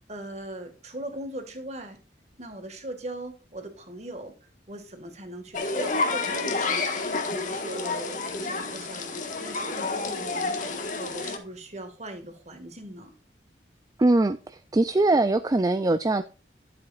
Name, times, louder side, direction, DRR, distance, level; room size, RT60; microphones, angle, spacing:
voice 1, 0.1-2.0 2.4-10.6 11.0-13.1, right 1 dB, 40° right, 1.8 m, -40 dB
sound 1, 5.5-11.4, left 3 dB, 45° left, 1.5 m, -29 dB
voice 2, 14.0-16.2, right 2 dB, 20° right, 0.4 m, -22 dB
11.5 x 7.7 x 2.4 m
head